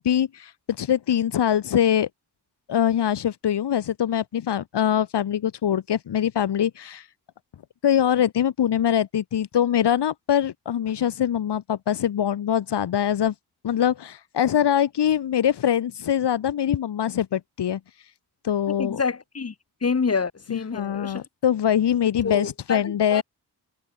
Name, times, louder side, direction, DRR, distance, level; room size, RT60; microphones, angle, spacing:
voice 1, 0.0-2.1 2.7-7.1 7.8-13.3 13.6-17.8 18.4-19.0 20.5-23.2, left 9 dB, 85° left, 1.1 m, -23 dB
voice 2, 18.7-19.5 19.8-21.3 22.2-23.2, left 5 dB, 40° left, 1.4 m, -27 dB
wide cardioid pair, 120°, 40 cm